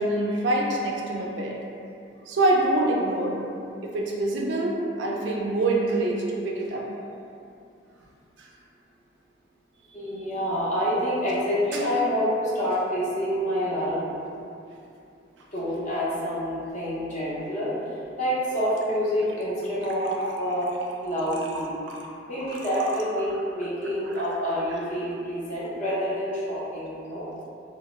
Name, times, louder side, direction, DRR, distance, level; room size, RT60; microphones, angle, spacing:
voice 1, 0.0-1.5 2.3-3.4 3.8-6.9 8.4-8.5 11.7-11.8 19.8-20.3 21.9-22.0, right 2 dB, 70° right, -2 dB, 0.3 m, -25 dB
voice 2, 9.9-14.1 15.5-17.7 18.2-20.7 21.0-21.7 22.3-27.2, equal, 40° left, -9 dB, 0.6 m, -27 dB
2.1 x 2.0 x 2.9 m, 2.6 s
head